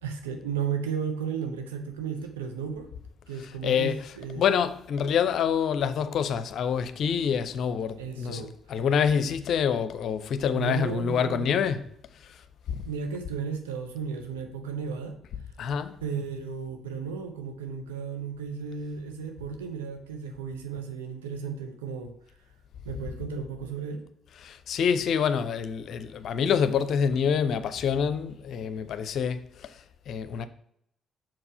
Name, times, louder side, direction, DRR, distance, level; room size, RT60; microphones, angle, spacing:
voice 1, 0.0-2.9 3.3-4.4 8.0-8.5 10.5-11.6 12.8-15.2 16.0-22.1 22.8-24.1, right 6 dB, 85° right, 0.8 m, -34 dB
voice 2, 3.3-11.9 12.2-12.4 12.7-12.8 15.6-16.0 24.3-30.5, left 7 dB, 60° left, 0.5 m, -27 dB
5.9 x 4.7 x 4.8 m
hypercardioid pair, 45°, 0 cm